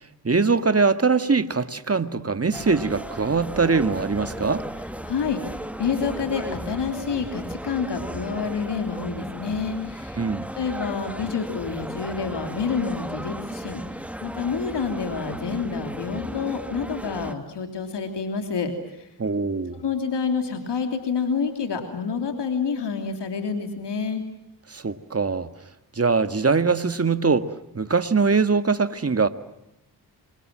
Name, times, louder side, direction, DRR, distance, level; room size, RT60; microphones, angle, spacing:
voice 1, 0.2-4.7 10.2-10.5 19.2-19.8 24.7-25.5 26.0-29.3, right 4 dB, 35° right, 1.8 m, -22 dB
sound 1, 2.5-17.3, equal, 5° right, 2.0 m, -35 dB
voice 2, 5.0-10.2 10.5-13.8 14.2-19.1 19.8-24.2, left 5 dB, 90° left, 3.3 m, -28 dB
28.0 x 25.0 x 7.5 m
cardioid pair, 60°, 40 cm